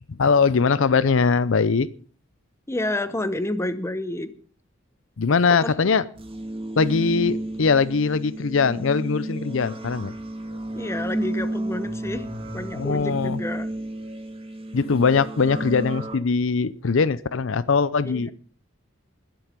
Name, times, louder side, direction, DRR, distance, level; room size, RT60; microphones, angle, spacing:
voice 1, 0.1-1.9 5.2-6.1 6.8-10.1 12.8-13.4 14.7-18.3, left 5 dB, 65° left, 17 dB, 0.6 m, -21 dB
voice 2, 2.7-4.3 5.6-5.8 10.7-12.3 12.5-13.7 18.1-18.2, left 1 dB, 15° left, 11 dB, 0.8 m, -29 dB
sound 1, 6.1-16.2, right 1 dB, 30° right, 2.3 m, -32 dB
21.5 x 7.7 x 5.2 m, 0.42 s
head